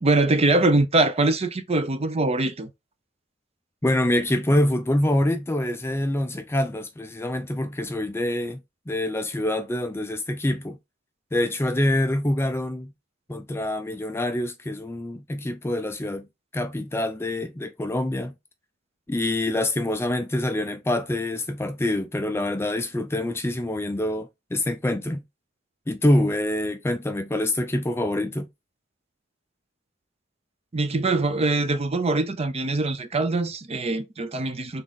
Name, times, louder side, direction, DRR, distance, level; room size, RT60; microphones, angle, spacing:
voice 1, 0.0-2.7 30.7-34.8, right 2 dB, 30° right, 0.6 m, -23 dB
voice 2, 3.8-8.6 8.9-10.8 11.3-12.9 13.3-16.3 16.5-18.3 19.1-25.2 25.9-28.5, left 1 dB, 10° left, 0.4 m, -25 dB
3.9 x 3.6 x 3.6 m
head